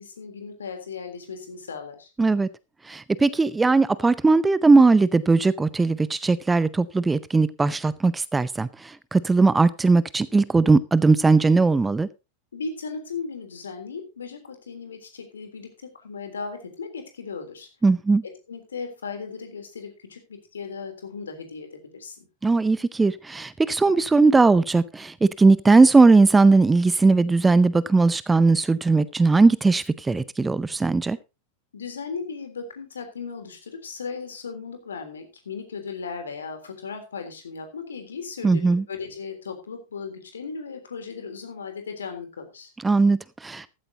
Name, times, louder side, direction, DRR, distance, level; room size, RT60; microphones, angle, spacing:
voice 1, 0.0-2.1 12.5-17.7 18.5-22.3 31.7-42.7, left 5 dB, 70° left, 3.4 m, -36 dB
voice 2, 2.2-2.5 2.9-12.1 17.8-18.2 22.4-31.2 38.4-38.8 42.8-43.7, right 3 dB, 10° right, 0.6 m, -19 dB
15.0 x 13.0 x 2.8 m
figure-of-eight pair, 90°, 0 cm